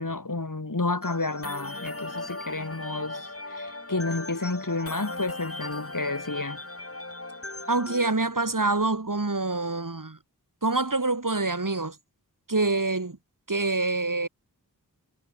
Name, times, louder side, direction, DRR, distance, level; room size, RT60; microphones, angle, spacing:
voice 1, 0.0-6.6, left 3 dB, 55° left, 6.4 m, -31 dB
sound 1, 1.0-8.1, left 2 dB, 40° left, 5.0 m, -37 dB
voice 2, 7.7-10.2 10.6-12.0 12.5-13.2 13.5-14.3, right 3 dB, 55° right, 5.7 m, -26 dB
wide cardioid pair, 55°, 37 cm